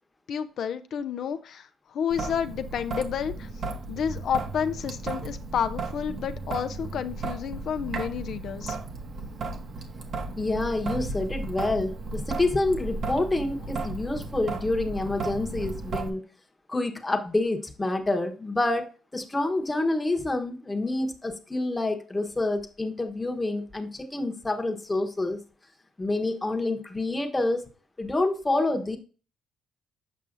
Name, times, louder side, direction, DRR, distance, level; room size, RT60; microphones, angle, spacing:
voice 1, 0.3-3.5 3.9-8.8, left 8 dB, 65° left, 9 dB, 0.5 m, -30 dB
Traffic noise roadway noise / Drip / Trickle dribble, 2.1-16.1, right 3 dB, 60° right, 1.2 m, -35 dB
voice 2, 10.4-16.2 16.7-25.4 26.0-27.6 28.0-29.0, left 2 dB, 15° left, 5 dB, 1.0 m, -27 dB
7.2 x 5.5 x 2.6 m, 0.37 s
cardioid pair, 90°, 0 cm